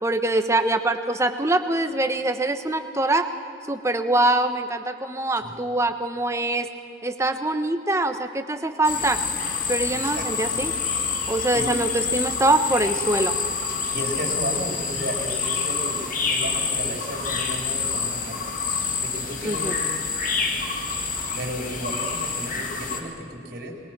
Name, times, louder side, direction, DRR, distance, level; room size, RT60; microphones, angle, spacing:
voice 1, 0.0-3.3 3.7-6.7 7.0-9.2 9.7-10.7 11.3-13.3 19.4-19.8, right 2 dB, 15° right, 8 dB, 1.0 m, -23 dB
sound 1, 8.8-23.0, left 5 dB, 40° left, 2.1 m, -27 dB
voice 2, 9.9-10.2 11.5-11.7 13.9-16.0 16.3-18.4 19.0-19.7 21.4-23.7, right 1 dB, 50° right, 1 dB, 4.1 m, -33 dB
28.0 x 22.0 x 6.1 m, 2.7 s
head